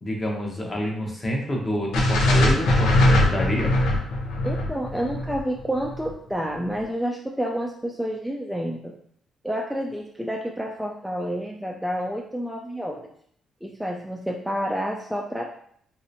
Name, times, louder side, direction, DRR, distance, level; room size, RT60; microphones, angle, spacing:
voice 1, 0.0-3.7, equal, 30° left, -1 dB, 0.9 m, -27 dB
sound 1, 1.9-6.1, left 1 dB, 85° left, 0.5 m, -21 dB
voice 2, 4.4-8.9 9.4-13.0 13.6-15.4, equal, 5° right, -1 dB, 0.3 m, -29 dB
3.1 x 2.8 x 2.7 m, 0.64 s
cardioid pair, 90°, 0 cm